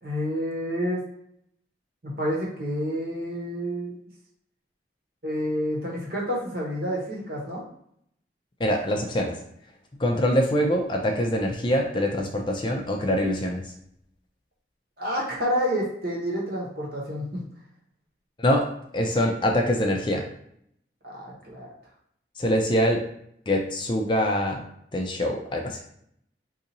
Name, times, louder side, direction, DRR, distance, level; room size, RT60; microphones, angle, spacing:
voice 1, 0.0-1.0 2.0-3.9 5.2-7.6 15.0-17.4 21.0-21.7, equal, 55° right, -3 dB, 1.1 m, -29 dB
voice 2, 8.6-9.4 10.0-13.6 18.4-18.7 18.9-20.3 22.4-23.0 23.5-24.6 24.9-25.8, equal, 25° left, 1 dB, 0.4 m, -24 dB
2.7 x 2.6 x 4.0 m, 0.71 s
head